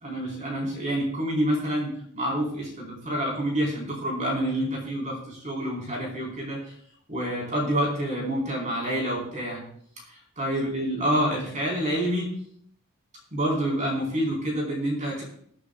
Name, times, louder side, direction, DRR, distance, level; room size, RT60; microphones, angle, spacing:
voice 1, 0.0-6.6 7.1-9.6 10.4-12.3 13.3-15.2, equal, 35° right, -2 dB, 4.2 m, -27 dB
22.0 x 9.8 x 2.4 m, 0.63 s
head